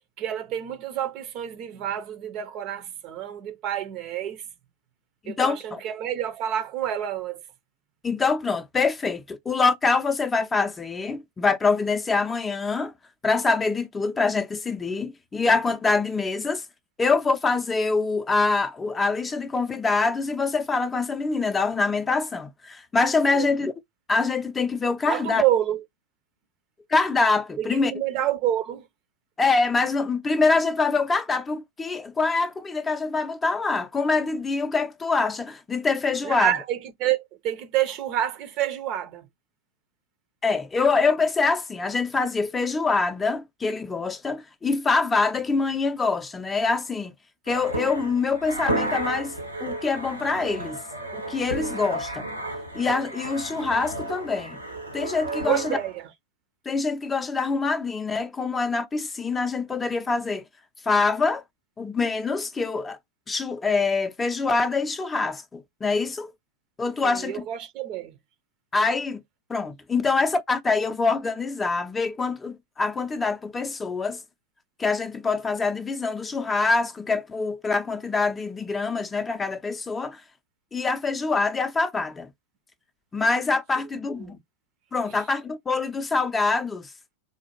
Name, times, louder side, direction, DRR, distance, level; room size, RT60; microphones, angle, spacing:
voice 1, 0.2-4.4 5.3-7.4 23.3-23.5 25.1-25.8 27.6-28.9 36.2-39.2 55.4-56.1 67.0-68.2 84.2-84.4 85.1-85.2, right 11 dB, 40° right, 0.6 m, -28 dB
voice 2, 5.2-5.8 8.0-12.9 13.2-16.6 17.0-23.7 24.1-25.4 26.9-27.9 29.4-36.5 40.4-47.1 47.5-49.3 49.6-50.8 51.1-52.2 52.7-54.6 54.9-55.6 56.7-60.4 60.9-61.4 61.8-63.0 63.3-66.3 66.8-67.4 68.7-69.2 69.5-74.2 74.8-80.2 80.7-82.3 83.1-84.4 84.9-86.9, left 4 dB, 15° left, 0.5 m, -25 dB
sound 1, 47.5-55.9, right 1 dB, 90° right, 1.1 m, -32 dB
3.8 x 2.4 x 2.9 m
figure-of-eight pair, 90°, 0 cm